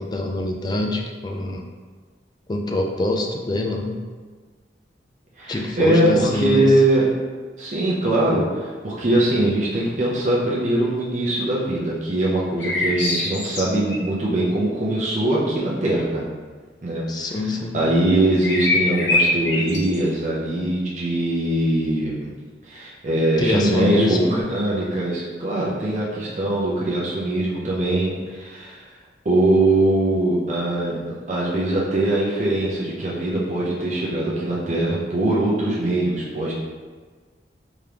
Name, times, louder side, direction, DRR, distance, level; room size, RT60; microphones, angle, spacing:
voice 1, 0.0-1.6 2.5-4.0 5.5-6.7 17.1-17.8 23.4-24.5, left 2 dB, 25° left, 2 dB, 0.3 m, -24 dB
voice 2, 5.4-7.1 7.6-16.3 16.8-22.3 22.7-28.9 29.2-36.5, right 1 dB, 40° right, -6 dB, 0.6 m, -22 dB
sound 1, 12.6-14.0 18.4-20.0, left 2 dB, 85° left, 0.8 m, -23 dB
3.6 x 2.9 x 3.3 m, 1.5 s
head